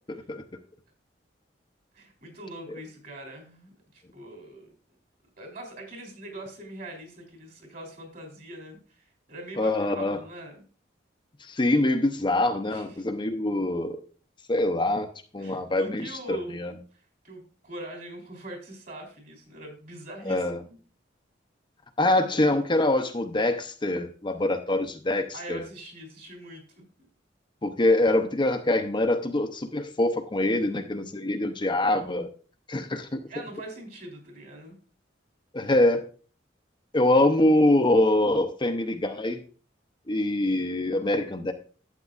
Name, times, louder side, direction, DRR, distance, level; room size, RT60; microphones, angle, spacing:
voice 1, 0.1-0.4 9.6-10.2 11.4-14.0 14.5-15.1 15.3-16.7 20.3-20.6 22.0-25.7 27.6-32.3 32.7-33.2 35.5-36.0 36.9-39.4 40.1-41.5, left 1 dB, 25° left, 6 dB, 0.6 m, -24 dB
voice 2, 1.9-4.7 5.4-10.6 12.7-12.8 15.4-20.8 25.3-26.8 33.3-34.8 35.6-35.7, right 1 dB, 50° right, 2 dB, 3.3 m, -42 dB
12.0 x 8.2 x 2.5 m, 0.38 s
head